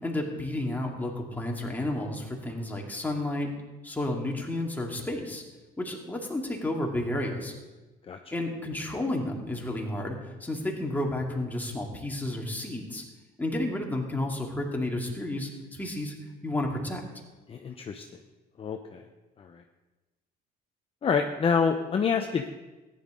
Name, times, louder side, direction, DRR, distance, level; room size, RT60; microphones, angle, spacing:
voice 1, 0.0-3.5 3.8-5.4 5.8-7.5 8.3-13.0 13.4-16.1 16.4-17.0, left 1 dB, 10° left, -1 dB, 2.3 m, -31 dB
voice 2, 17.5-18.0 18.6-19.0 19.4-19.6 21.0-22.5, left 6 dB, 35° left, 4 dB, 0.7 m, -27 dB
14.5 x 10.5 x 3.8 m, 1.2 s
cardioid pair, 110°, 17 cm